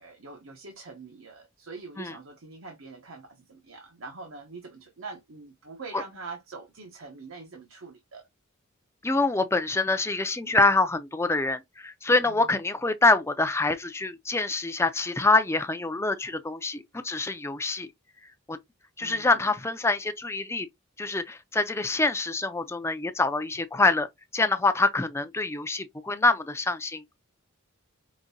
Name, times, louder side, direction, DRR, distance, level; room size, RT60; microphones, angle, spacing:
voice 1, 0.0-8.3 12.2-12.6 19.0-19.5, right 4 dB, 70° right, 0.9 m, -44 dB
voice 2, 9.0-17.9 18.5-18.6 19.0-20.7 21.0-24.1 24.3-27.2, left 3 dB, 10° left, 0.4 m, -25 dB
5.1 x 2.7 x 2.6 m
head